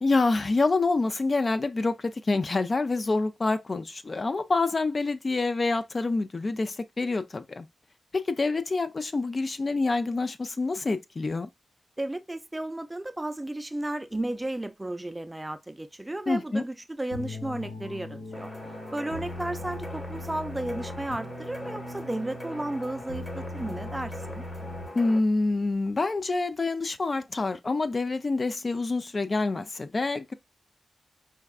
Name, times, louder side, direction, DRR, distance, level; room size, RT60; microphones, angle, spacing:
voice 1, 0.0-7.7 8.1-11.5 16.3-16.6 24.9-30.3, left 3 dB, 45° left, 0.4 m, -27 dB
voice 2, 12.0-18.5 18.9-24.5, right 1 dB, 15° right, 0.5 m, -34 dB
sound 1, 17.1-25.2, left 2 dB, 85° left, 1.1 m, -39 dB
sound 2, 18.3-25.2, left 1 dB, 30° left, 1.2 m, -42 dB
4.5 x 2.3 x 2.3 m
cardioid pair, 45°, 0 cm